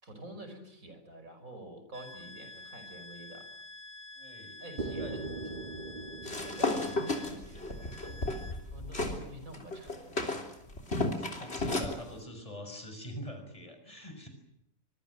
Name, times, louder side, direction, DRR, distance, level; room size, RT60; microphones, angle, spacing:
voice 1, 0.0-3.5 4.6-5.2 6.2-7.8 8.0-8.1 8.7-10.2, right 1 dB, 85° right, 8 dB, 5.9 m, -48 dB
sound 1, 1.9-9.5 9.9-10.0, left 2 dB, 55° right, 4.9 m, -49 dB
voice 2, 4.1-4.6 4.9-5.2 6.9-7.0 11.1-14.3, equal, 25° left, 6 dB, 6.4 m, -45 dB
sound 2, 4.8-8.7, right 3 dB, 35° right, 2.3 m, -41 dB
sound 3, 6.2-9.2 9.5-12.0, left 2 dB, 50° left, 3.7 m, -33 dB
25.0 x 23.0 x 7.9 m, 0.75 s
omnidirectional pair, 1.4 m